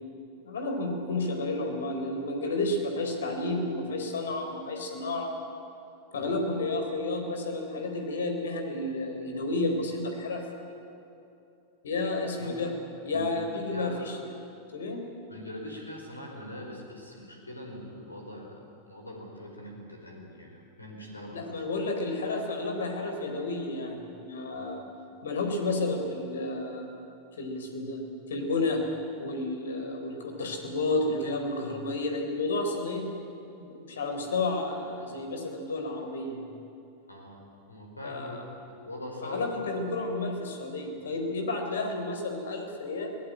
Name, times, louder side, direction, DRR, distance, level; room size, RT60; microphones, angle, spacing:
voice 1, 0.4-5.3 6.1-10.4 11.8-12.7 13.0-14.3 14.7-15.0 21.3-24.8 25.2-26.9 27.3-28.8 29.2-33.1 33.6-36.4 38.0-38.4 39.2-43.2, left 2 dB, 65° left, 4 dB, 4.1 m, -31 dB
voice 2, 12.2-12.6 13.1-14.0 15.3-18.6 18.9-21.5 24.5-24.7 37.1-39.4, left 1 dB, 80° left, 1 dB, 5.1 m, -43 dB
23.5 x 18.5 x 9.8 m, 2.7 s
figure-of-eight pair, 90°, 0 cm